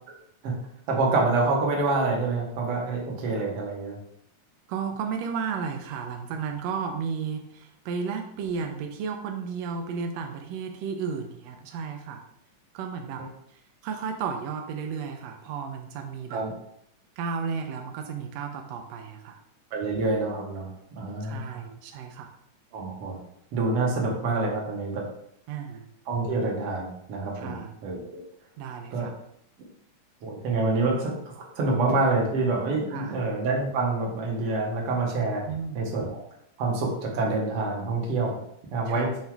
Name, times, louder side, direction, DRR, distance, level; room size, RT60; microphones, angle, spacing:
voice 1, 0.9-4.0 16.3-16.5 19.7-20.7 21.0-21.5 22.7-23.2 23.5-25.0 26.1-28.2 28.9-29.1 30.2-35.4 35.7-36.3 36.6-38.4 38.7-39.1, right 3 dB, 55° right, -1 dB, 1.9 m, -27 dB
voice 2, 4.7-12.2 12.7-13.2 13.5-16.4 17.2-19.4 21.2-22.3 25.5-25.9 27.3-27.7 28.6-29.2 32.9-33.2 35.5-35.9 38.9-39.1, right 6 dB, 90° right, 4 dB, 1.5 m, -33 dB
7.6 x 2.7 x 4.6 m, 0.72 s
omnidirectional pair, 3.7 m